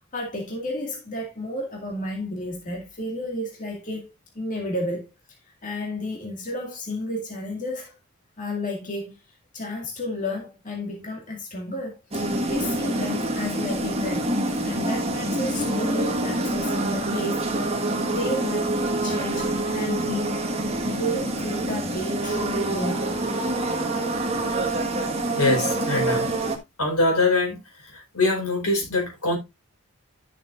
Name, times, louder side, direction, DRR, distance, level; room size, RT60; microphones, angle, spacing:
voice 1, 0.0-4.1 4.4-5.0 5.6-7.9 8.4-9.2 9.5-14.3 14.6-17.4 17.8-20.4 20.9-23.2, left 1 dB, 35° left, 2.1 m, -32 dB
sound 1, 12.1-26.6, right 1 dB, 25° right, 1.5 m, -26 dB
voice 2, 25.4-26.3 26.8-27.6 27.8-29.4, left 2 dB, 85° left, 4.7 m, -23 dB
12.0 x 6.8 x 2.5 m
head